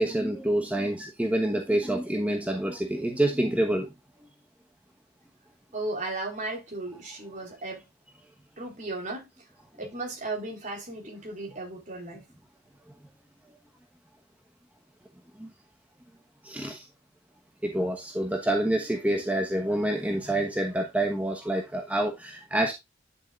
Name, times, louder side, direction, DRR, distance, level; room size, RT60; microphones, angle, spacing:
voice 1, 0.0-3.9 15.4-15.5 16.4-16.8 17.6-22.7, right 1 dB, 10° right, 1.1 m, -27 dB
voice 2, 5.7-7.8 8.6-9.3 9.8-12.3, right 2 dB, 40° right, 4.1 m, -35 dB
10.5 x 7.2 x 2.4 m
head